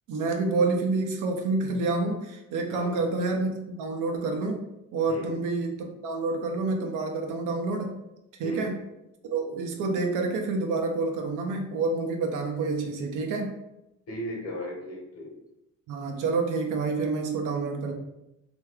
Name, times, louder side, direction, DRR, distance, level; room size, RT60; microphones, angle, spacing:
voice 1, 0.1-4.6 4.9-5.7 6.0-7.9 8.4-8.7 9.3-13.5 15.9-17.9, right 3 dB, 90° right, 3 dB, 0.6 m, -28 dB
voice 2, 2.7-3.0 5.1-5.4 8.4-8.8 14.1-15.3, equal, 50° left, -1 dB, 1.1 m, -36 dB
3.0 x 2.3 x 3.4 m, 0.90 s
cardioid pair, 90°, 30 cm